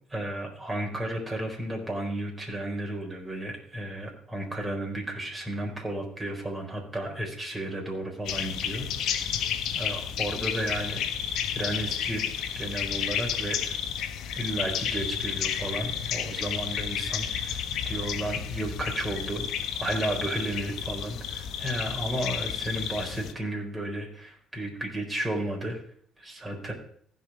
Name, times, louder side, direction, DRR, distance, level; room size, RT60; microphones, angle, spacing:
voice 1, 0.1-9.4 9.7-11.0 11.5-12.2 12.6-13.8 14.4-19.5 19.8-25.8 26.2-26.7, right 1 dB, 20° right, 0 dB, 4.3 m, -33 dB
sound 1, 8.2-23.3, left 8 dB, 70° left, 0.9 m, -31 dB
15.5 x 5.3 x 4.9 m, 0.62 s
supercardioid pair, 70°, 0 cm